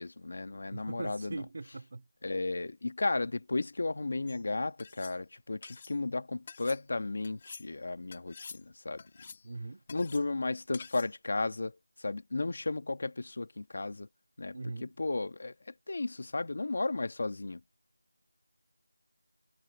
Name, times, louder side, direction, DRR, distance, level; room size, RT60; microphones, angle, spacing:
voice 1, 0.0-1.4 2.2-9.0 9.9-11.7 12.0-14.1 14.4-15.5 15.9-17.6, left 3 dB, 35° left, 1.6 m, -34 dB
voice 2, 0.7-2.0 9.4-9.8 14.5-14.9, right 3 dB, 30° right, 2.2 m, -41 dB
sound 1, 4.3-4.4 4.8-5.2 5.6-5.9 6.5-6.8 7.2-7.7 8.1-8.6 9.0-9.5 9.9-10.2 10.7-11.1, left 5 dB, 15° left, 2.5 m, -48 dB
figure-of-eight pair, 180°, 0 cm